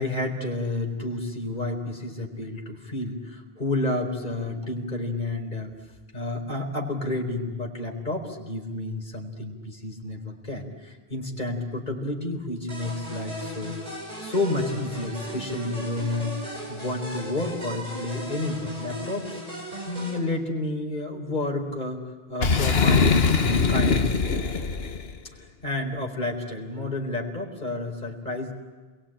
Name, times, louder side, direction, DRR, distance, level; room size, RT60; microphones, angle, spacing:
voice 1, 0.0-5.7 6.1-13.8 14.2-19.3 19.9-24.1 25.6-28.5, left 2 dB, 45° left, 2 dB, 4.3 m, -30 dB
sound 1, 12.7-20.2, equal, 35° right, 5.8 m, -37 dB
Boom, 22.4-25.1, left 4 dB, 75° left, 1.5 m, -22 dB
30.0 x 22.0 x 8.9 m, 1.3 s
omnidirectional pair, 1.0 m